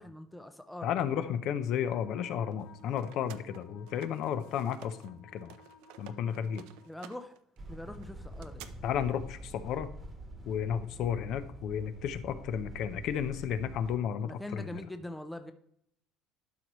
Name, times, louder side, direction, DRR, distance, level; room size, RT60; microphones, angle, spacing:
voice 1, 0.0-0.9 6.9-7.3 7.7-8.6 14.2-15.5, left 1 dB, 5° left, 0.4 m, -43 dB
voice 2, 0.8-5.5 6.0-6.6 8.8-9.9 10.4-14.8, left 8 dB, 50° left, 0.6 m, -33 dB
Wind instrument woodwind instrument, 1.8-7.0, left 6 dB, 75° left, 1.4 m, -58 dB
sound 1, 2.5-5.1 5.4-8.7, right 12 dB, 80° right, 0.5 m, -53 dB
sound 2, 7.6-14.0, right 1 dB, 20° right, 1.2 m, -46 dB
12.0 x 4.7 x 3.0 m
cardioid pair, 165°, 0 cm